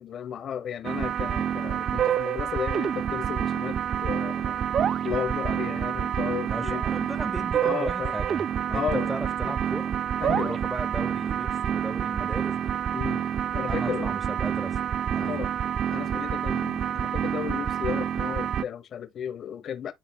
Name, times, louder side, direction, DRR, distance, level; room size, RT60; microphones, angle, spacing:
voice 1, 0.0-4.6 5.0-6.9 7.6-8.1 8.7-9.1 9.4-9.5 10.2-10.6 12.9-13.3 13.5-14.2 15.2-15.5 15.9-19.9, left 8 dB, 50° left, 1.1 m, -34 dB
sound 1, 0.8-18.6, right 9 dB, 45° right, 0.3 m, -28 dB
voice 2, 6.4-9.9 10.4-12.7 13.7-14.8 15.1-15.4, right 1 dB, 10° right, 0.8 m, -36 dB
10.5 x 4.1 x 2.2 m
supercardioid pair, 95°, 0 cm